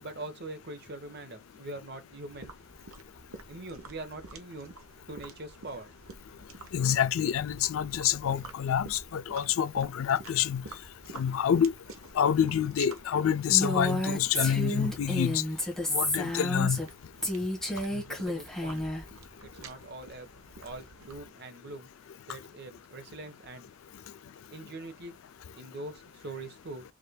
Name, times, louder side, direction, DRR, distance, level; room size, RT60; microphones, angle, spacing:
voice 1, 0.0-2.5 3.5-4.7 5.1-5.9 18.1-18.9 19.4-20.3 20.6-21.9 22.3-23.7 24.5-25.2 25.5-26.8, right 2 dB, 50° right, 1.0 m, -43 dB
sound 1, 2.3-21.3, right 3 dB, 75° right, 1.0 m, -50 dB
voice 2, 6.7-10.6 11.1-11.7 12.2-15.4 15.9-16.8, left 9 dB, 70° left, 0.4 m, -27 dB
Female speech woman speaking, 13.5-16.9 17.2-19.0, left 1 dB, ahead, 1.3 m, -30 dB
4.9 x 3.3 x 2.2 m
head